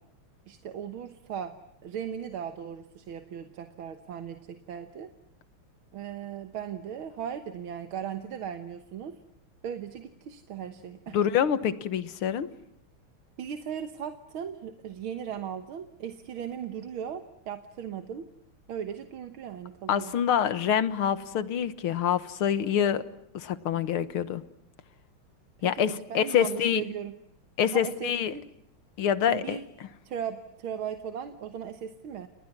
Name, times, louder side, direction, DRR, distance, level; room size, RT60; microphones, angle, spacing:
voice 1, 0.5-1.6 1.8-5.1 5.9-9.2 9.6-11.2 13.4-18.3 18.7-20.1 25.6-27.2 27.7-28.4 29.3-29.6 30.0-32.3, right 8 dB, 75° right, 8 dB, 2.0 m, -37 dB
voice 2, 11.1-12.5 19.9-23.0 23.3-24.4 25.6-26.8 27.6-28.3 29.0-29.6, left 9 dB, 80° left, 13 dB, 2.1 m, -26 dB
30.0 x 29.5 x 6.1 m, 0.78 s
omnidirectional pair, 2.3 m